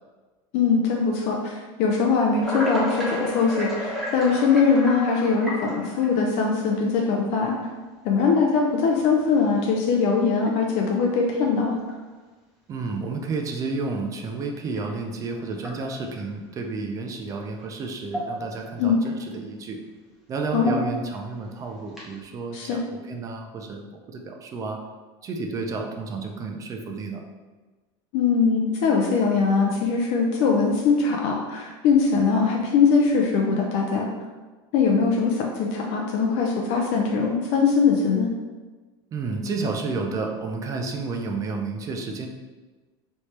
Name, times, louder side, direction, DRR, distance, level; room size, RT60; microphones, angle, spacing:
voice 1, 0.5-7.5 8.0-11.8 18.8-19.0 20.5-20.8 22.5-22.8 28.1-34.1 34.7-38.3, left 5 dB, 55° left, 0 dB, 0.6 m, -21 dB
sound 1, 2.4-6.3 7.1-7.2 8.2-8.3 9.0-9.3 9.8-9.9 10.3-10.5 11.9-12.0 14.7-14.8 15.6-16.2 17.6-17.7 18.0-18.7 19.0-19.1 20.4-21.2 21.9-22.2, equal, ahead, 0.8 m, -32 dB
voice 2, 12.7-19.8 20.3-22.8 23.1-24.8 25.2-27.2 39.1-42.3, right 3 dB, 25° right, 3 dB, 0.4 m, -31 dB
3.3 x 3.2 x 4.2 m, 1.3 s
supercardioid pair, 150°, 13 cm